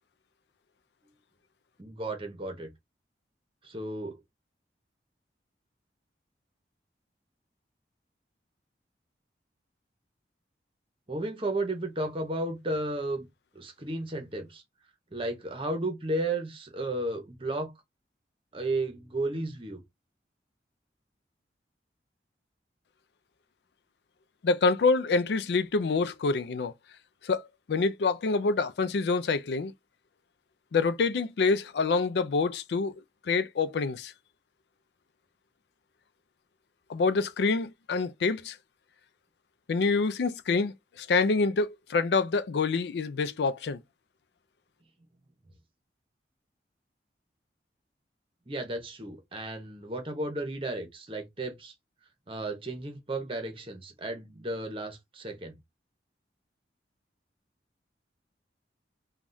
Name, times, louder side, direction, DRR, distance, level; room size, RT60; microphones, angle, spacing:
voice 1, 1.8-2.7 3.6-4.2 11.1-13.3 13.5-14.6 15.1-17.7 18.5-19.8 48.5-51.7 52.3-55.6, right 2 dB, 30° right, 0.8 m, -33 dB
voice 2, 24.4-26.7 27.2-27.4 27.7-29.7 30.7-32.9 33.3-34.1 36.9-38.6 39.7-43.8, left 4 dB, 70° left, 0.4 m, -26 dB
3.4 x 2.3 x 2.6 m
head